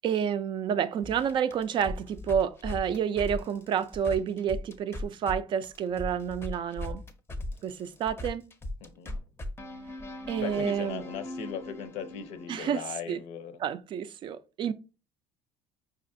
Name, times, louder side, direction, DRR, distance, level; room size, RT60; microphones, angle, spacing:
voice 1, 0.0-7.0 7.6-8.4 10.3-11.0 12.5-12.8 13.1-13.2 13.6-14.7, right 8 dB, 45° right, 0.3 m, -29 dB
sound 1, 1.0-5.4 5.6-12.9, left 1 dB, 20° left, 0.5 m, -39 dB
voice 2, 8.8-9.2 10.4-13.6, left 7 dB, 65° left, 0.6 m, -38 dB
5.0 x 2.4 x 2.6 m
cardioid pair, 110°, 12 cm